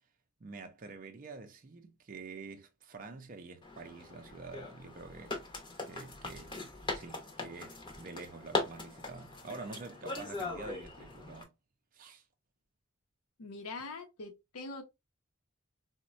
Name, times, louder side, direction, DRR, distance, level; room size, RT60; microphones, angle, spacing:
voice 1, 0.4-5.4 5.9-11.5 11.9-12.2, right 3 dB, 40° right, 0.4 m, -47 dB
sound 1, 3.6-11.4, left 2 dB, 20° left, 0.7 m, -40 dB
voice 2, 13.4-14.8, left 3 dB, 90° left, 0.6 m, -43 dB
4.0 x 2.1 x 2.4 m
head